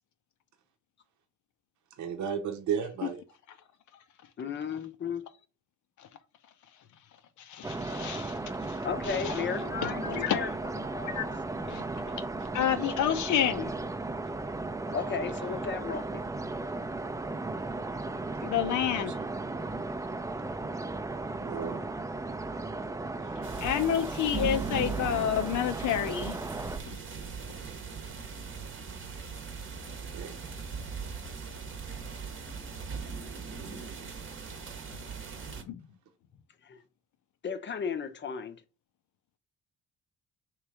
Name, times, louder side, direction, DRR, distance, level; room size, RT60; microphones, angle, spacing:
voice 1, 2.0-3.2 21.4-21.8 29.9-30.4, right 7 dB, 70° right, 0.8 m, -34 dB
voice 2, 4.4-5.3 8.8-10.5 11.8-11.9 14.9-16.2 36.6-36.8 37.4-38.6, left 6 dB, 40° left, 0.7 m, -34 dB
voice 3, 7.4-10.5 10.9-12.2 12.5-13.8 18.4-19.1 23.6-26.4 26.9-27.0 35.7-35.8, left 9 dB, 75° left, 0.7 m, -30 dB
sound 1, 7.6-26.8, right 2 dB, 10° right, 0.4 m, -36 dB
sound 2, 23.4-35.6, right 5 dB, 40° right, 0.9 m, -39 dB
3.3 x 3.1 x 4.8 m
cardioid pair, 90°, 30 cm